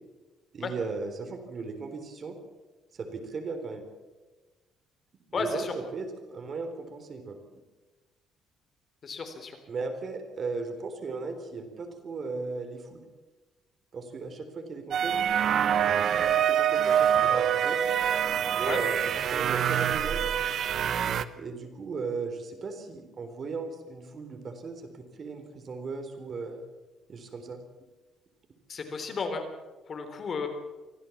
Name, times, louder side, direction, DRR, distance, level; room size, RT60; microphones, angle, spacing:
voice 1, 0.5-2.4 2.9-3.9 5.3-7.4 9.7-13.0 13.9-15.1 15.9-17.8 18.5-20.2 21.4-26.6 27.1-27.6, right 4 dB, 40° right, 6 dB, 3.8 m, -37 dB
voice 2, 5.3-5.7 9.0-9.6 18.6-18.8 28.7-29.4 29.9-30.5, left 4 dB, 40° left, 6 dB, 3.6 m, -33 dB
sound 1, 14.9-21.2, right 9 dB, 55° right, 1.0 m, -25 dB
25.5 x 15.5 x 7.3 m, 1.2 s
cardioid pair, 130°, 0 cm